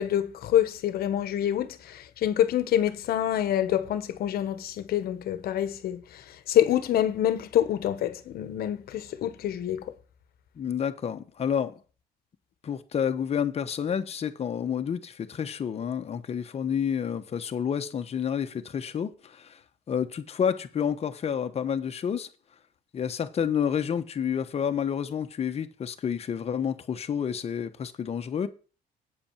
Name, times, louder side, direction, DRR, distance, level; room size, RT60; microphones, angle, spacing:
voice 1, 0.0-9.8, left 11 dB, 65° left, 1.1 m, -26 dB
voice 2, 10.6-11.8 12.6-19.6 19.9-22.3 22.9-28.5, left 8 dB, 35° left, 1.0 m, -29 dB
8.7 x 5.2 x 7.2 m
cardioid pair, 110°, 17 cm